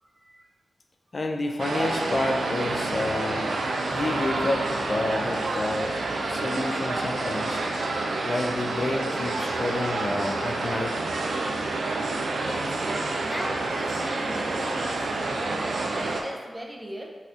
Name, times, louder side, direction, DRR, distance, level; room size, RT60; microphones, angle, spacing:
voice 1, 0.0-0.4 12.4-12.7 13.2-17.1, right 1 dB, 20° right, 1 dB, 0.5 m, -38 dB
voice 2, 1.1-3.5 3.9-6.0 6.3-7.6 8.2-11.1, left 2 dB, 50° left, 3 dB, 0.4 m, -29 dB
sound 1, 1.6-16.2, right 2 dB, 80° right, 0.3 m, -28 dB
sound 2, 3.9-7.5, equal, 85° left, 1.4 m, -44 dB
4.0 x 2.6 x 2.4 m, 1.5 s
cardioid pair, 40°, 0 cm